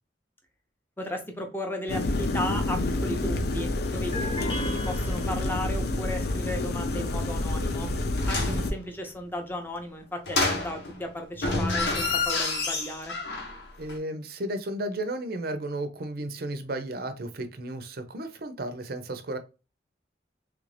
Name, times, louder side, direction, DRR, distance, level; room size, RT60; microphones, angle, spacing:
voice 1, 1.0-7.9 8.3-13.1, left 1 dB, 10° left, 0.6 m, -35 dB
sound 1, 1.9-8.7, left 2 dB, 60° left, 0.4 m, -28 dB
sound 2, 4.1-5.9, left 1 dB, 30° left, 1.0 m, -37 dB
sound 3, 8.2-8.7 10.3-11.0 11.4-13.6 13.9-14.0, left 3 dB, 75° left, 0.9 m, -28 dB
voice 2, 13.8-19.4, right 1 dB, 55° right, 0.6 m, -34 dB
3.3 x 2.5 x 3.2 m
head